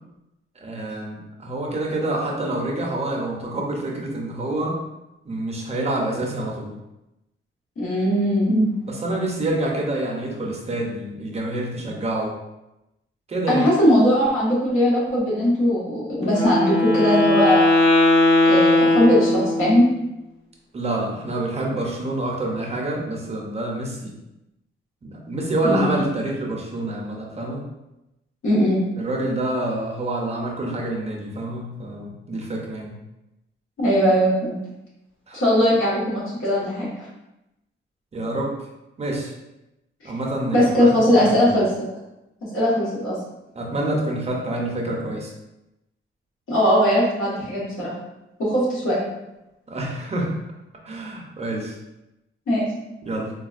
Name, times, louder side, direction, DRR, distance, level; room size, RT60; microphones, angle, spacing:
voice 1, 0.6-4.8 5.2-6.7 8.9-12.3 13.3-13.6 20.7-24.1 25.0-27.6 29.0-32.9 35.3-35.4 38.1-38.6 39.0-39.3 40.0-41.5 43.5-45.3 49.7-50.3 50.9-51.8 53.0-53.3, right 1 dB, 30° right, -2 dB, 0.6 m, -27 dB
voice 2, 7.8-8.7 13.5-17.7 18.4-19.8 25.6-26.0 28.4-28.8 33.8-34.6 35.3-37.1 40.0-40.1 40.5-41.8 42.5-43.2 46.5-47.9 48.4-49.0 52.5-52.7, equal, 80° left, -7 dB, 1.4 m, -19 dB
Wind instrument woodwind instrument, 16.2-19.9, left 1 dB, 25° left, 1.2 m, -18 dB
4.0 x 2.3 x 2.4 m, 0.92 s
wide cardioid pair, 140°, 21 cm